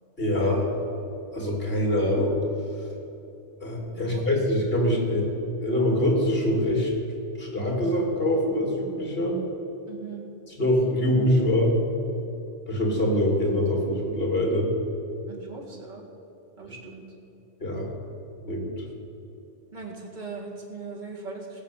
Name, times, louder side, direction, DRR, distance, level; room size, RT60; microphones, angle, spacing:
voice 1, 0.2-0.7 1.3-2.4 3.6-5.3 5.6-6.9 7.4-9.4 10.5-11.8 12.7-14.7 17.6-17.9 18.4-18.8, left 1 dB, 55° left, -1 dB, 3.1 m, -24 dB
voice 2, 3.9-4.3 9.9-10.2 15.3-16.0 16.6-17.0 19.7-21.6, right 4 dB, 40° right, -2 dB, 2.2 m, -39 dB
17.0 x 7.5 x 7.2 m, 3.0 s
omnidirectional pair, 1.2 m